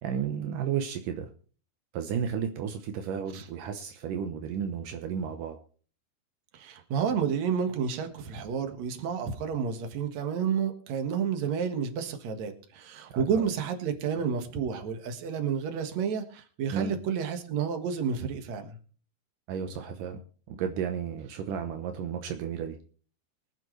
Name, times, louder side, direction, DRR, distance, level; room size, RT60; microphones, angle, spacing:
voice 1, 0.0-1.3 1.9-5.6 13.1-13.2 16.7-16.9 19.5-20.2 20.5-22.8, right 7 dB, 85° right, 6 dB, 1.9 m, -33 dB
voice 2, 6.5-18.8, right 7 dB, 55° right, 6 dB, 2.0 m, -30 dB
24.0 x 8.9 x 3.2 m, 0.41 s
omnidirectional pair, 5.3 m